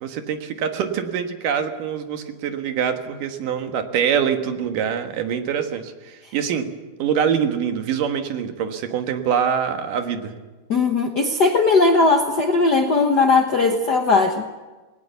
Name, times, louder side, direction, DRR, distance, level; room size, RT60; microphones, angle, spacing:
voice 1, 0.0-6.7 7.0-10.3, right 8 dB, 80° right, 7 dB, 3.1 m, -24 dB
voice 2, 10.7-14.4, left 3 dB, 65° left, 4 dB, 1.0 m, -18 dB
20.0 x 18.5 x 8.2 m, 1.2 s
omnidirectional pair, 3.7 m